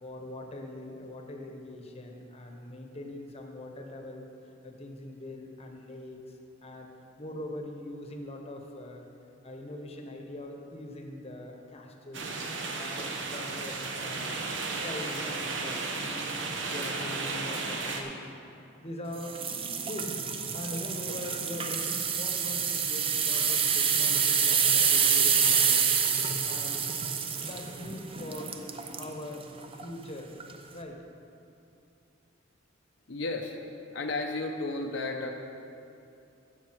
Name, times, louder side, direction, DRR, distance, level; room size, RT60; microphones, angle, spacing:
voice 1, 0.0-6.9 7.2-9.0 9.4-12.3 12.6-14.4 14.8-16.3 16.7-18.2 18.8-20.1 20.5-25.9 26.4-26.8 27.4-28.6 28.9-29.5 29.7-30.3 30.7-31.0, left 1 dB, 30° left, 3 dB, 1.0 m, -42 dB
sound 1, 12.1-18.0, right 3 dB, 65° right, 1.1 m, -34 dB
sound 2, 19.2-29.1 29.6-29.9 30.4-30.5, right 7 dB, 30° right, 0.6 m, -27 dB
voice 2, 33.1-33.6 33.9-35.3, left 2 dB, 65° left, 2 dB, 0.7 m, -33 dB
15.5 x 6.7 x 4.6 m, 2.6 s
head